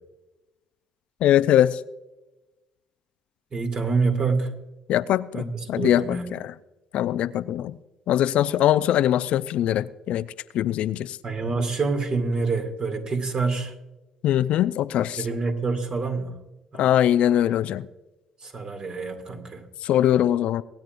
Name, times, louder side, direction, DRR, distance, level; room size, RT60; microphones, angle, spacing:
voice 1, 1.2-1.8 4.9-6.5 6.9-7.8 8.1-10.3 10.5-11.2 14.2-15.3 16.7-17.9 19.8-20.6, left 11 dB, 65° left, 0.4 m, -22 dB
voice 2, 3.5-4.5 5.3-6.4 11.2-13.7 15.2-16.4 16.7-17.0 18.4-19.6, right 4 dB, 45° right, 2.4 m, -27 dB
23.5 x 9.0 x 2.6 m
hypercardioid pair, 55°, 2 cm